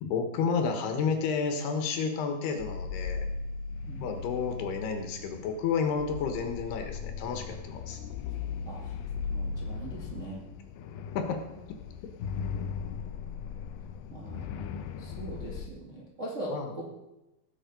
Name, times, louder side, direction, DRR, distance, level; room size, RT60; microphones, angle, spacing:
voice 1, 0.0-3.3 4.0-8.0 11.1-11.4 16.5-16.7, left 5 dB, 70° left, 5 dB, 3.2 m, -31 dB
sound 1, 2.6-15.7, left 5 dB, 90° left, 2.0 m, -38 dB
voice 2, 8.6-9.0 9.3-10.4 14.1-14.7 15.0-16.8, right 1 dB, 35° right, -4 dB, 1.2 m, -41 dB
18.5 x 7.2 x 5.3 m, 0.96 s
omnidirectional pair, 4.9 m